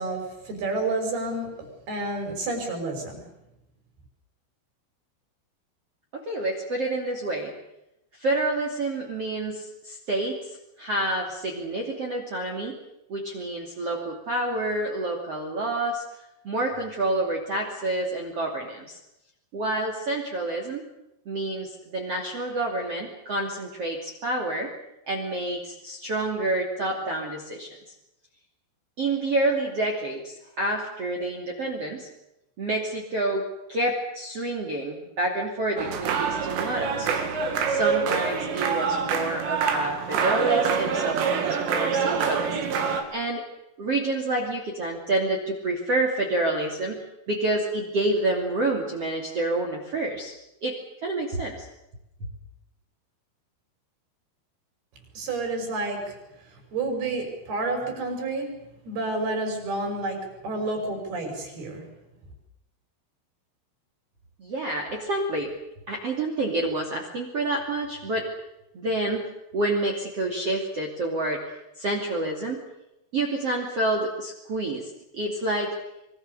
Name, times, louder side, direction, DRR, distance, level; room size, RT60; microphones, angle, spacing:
voice 1, 0.0-1.5 1.9-3.3 55.1-56.2 56.7-58.5 58.9-61.9, right 2 dB, 50° right, 4 dB, 7.1 m, -29 dB
voice 2, 6.1-7.5 8.2-10.5 10.8-12.8 13.1-16.0 16.4-19.0 19.5-20.8 21.2-24.7 25.1-27.7 29.0-32.1 32.6-33.4 33.7-37.4 37.7-42.6 42.8-43.4 43.8-47.0 47.3-50.3 50.6-51.7 64.4-65.5 65.9-68.3 68.7-69.2 69.5-71.4 71.8-72.6 73.1-75.7, right 2 dB, 35° right, 1 dB, 3.1 m, -28 dB
sound 1, 35.8-43.0, right 6 dB, 75° right, 5.0 m, -26 dB
26.0 x 23.5 x 6.9 m, 0.88 s
omnidirectional pair, 5.7 m